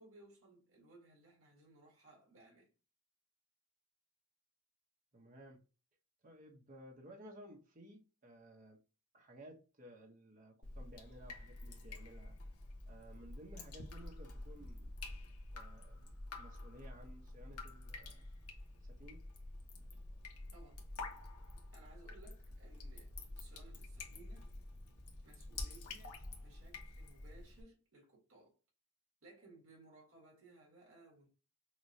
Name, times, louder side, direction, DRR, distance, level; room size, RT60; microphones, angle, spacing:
voice 1, 0.0-2.7 20.5-20.8 21.7-24.5 25.2-28.6 29.2-31.3, right 2 dB, 65° right, 1.7 m, -61 dB
voice 2, 5.1-5.6 6.2-8.8 9.1-12.4 12.9-14.9 15.5-16.1 16.4-18.3 18.8-19.2, right 1 dB, 35° right, 0.9 m, -56 dB
Drip, 10.6-27.6, left 2 dB, 80° left, 1.1 m, -49 dB
6.1 x 2.2 x 2.7 m
head